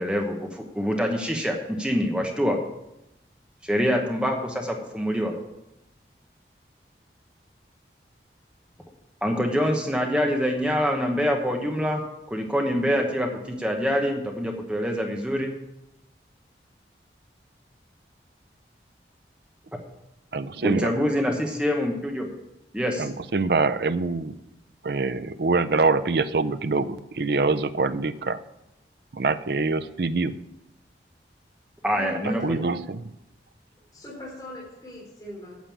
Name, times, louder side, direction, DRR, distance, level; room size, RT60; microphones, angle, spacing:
voice 1, 0.0-2.6 3.6-5.3 9.2-12.0 12.3-15.6 19.7-19.8 20.6-22.3 22.7-23.1 31.8-32.6, equal, 5° right, 2 dB, 1.0 m, -25 dB
voice 2, 20.3-20.9 23.0-24.3 24.8-28.4 29.1-30.3 32.4-33.0, right 3 dB, 65° right, 13 dB, 0.5 m, -24 dB
voice 3, 31.8-32.5 33.9-35.6, left 1 dB, 20° left, -5 dB, 3.4 m, -39 dB
9.2 x 6.8 x 8.4 m, 0.89 s
head